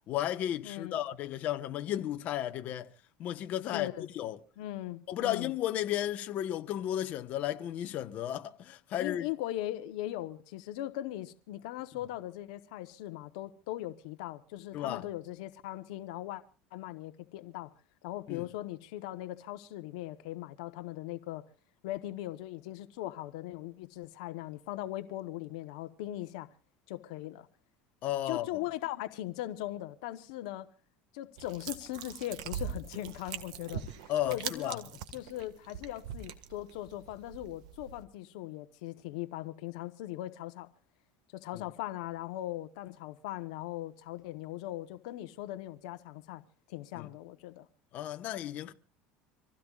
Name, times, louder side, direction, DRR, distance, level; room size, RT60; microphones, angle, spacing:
voice 1, 0.1-2.9 3.2-3.9 4.1-4.4 5.1-9.3 14.7-15.1 18.3-18.4 28.0-28.5 34.1-34.8 41.5-41.6 46.9-47.1 47.9-48.7, left 12 dB, 50° left, 1.2 m, -34 dB
voice 2, 0.6-1.0 3.7-4.1 4.6-5.5 9.0-16.4 16.7-17.7 18.0-21.4 21.8-26.5 26.9-27.5 28.3-30.7 31.1-40.7 41.3-46.4 46.7-47.7, left 15 dB, 80° left, 1.0 m, -39 dB
sound 1, 31.4-38.0, right 8 dB, 90° right, 1.7 m, -42 dB
26.5 x 16.5 x 2.4 m
supercardioid pair, 130°, 4 cm